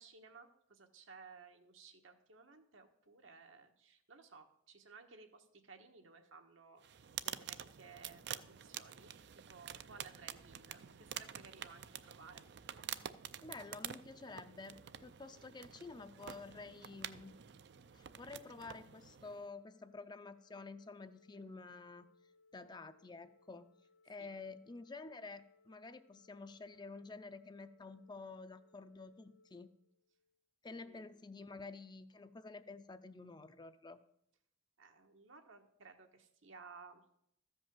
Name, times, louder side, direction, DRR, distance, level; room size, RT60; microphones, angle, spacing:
voice 1, 0.0-9.1 9.5-12.4 24.2-24.3 30.8-31.1 34.8-37.0, right 4 dB, 80° right, 5 dB, 1.3 m, -58 dB
sound 1, 6.8-19.5, right 10 dB, 60° right, 0.4 m, -48 dB
voice 2, 13.4-17.4 17.9-22.1 22.5-23.7 24.0-29.7 30.6-34.0, left 3 dB, 20° left, 11 dB, 0.5 m, -50 dB
Organ, 19.3-30.4, left 3 dB, 65° left, 0.9 m, -71 dB
13.5 x 5.4 x 7.4 m, 0.73 s
head